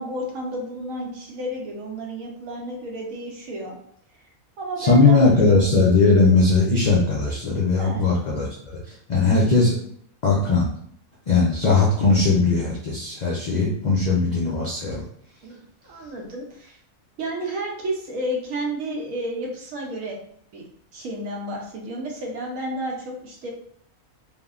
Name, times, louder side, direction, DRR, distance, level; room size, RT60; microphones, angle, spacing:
voice 1, 0.0-3.8 4.6-5.6 7.8-8.0 15.4-16.8 17.2-20.2 20.5-20.6 20.9-23.5, right 1 dB, 75° right, 0 dB, 1.1 m, -31 dB
voice 2, 4.8-8.5 8.9-9.8 10.2-10.7 11.3-15.0, left 3 dB, 85° left, -5 dB, 0.3 m, -19 dB
3.3 x 2.1 x 2.3 m, 0.67 s
omnidirectional pair, 1.4 m